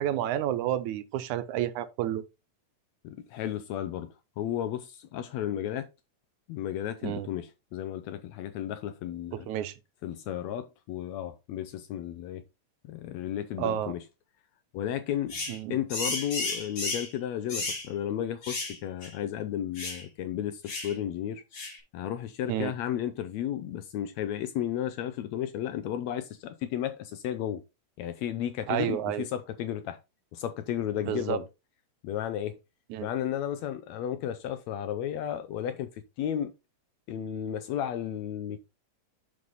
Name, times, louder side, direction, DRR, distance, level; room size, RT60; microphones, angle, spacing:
voice 1, 0.0-2.2 7.0-7.3 9.5-9.7 13.6-13.9 15.5-15.8 22.5-22.7 28.7-29.3 31.1-31.4 32.9-33.1, right 12 dB, 85° right, 2.2 m, -30 dB
voice 2, 3.0-4.1 4.4-5.9 6.5-9.5 10.0-12.4 12.9-14.0 14.7-15.4 15.7-21.4 21.9-27.6 28.0-30.0 30.3-31.5 32.0-32.6 33.0-36.5 37.1-38.6, left 10 dB, 80° left, 1.9 m, -33 dB
sound 1, 15.3-15.6 15.9-17.1 17.5-17.9 18.4-18.8 19.0-19.1 19.8-20.0 20.7-20.9 21.5-21.8, left 3 dB, 50° left, 4.2 m, -33 dB
6.8 x 6.4 x 4.0 m
omnidirectional pair, 3.3 m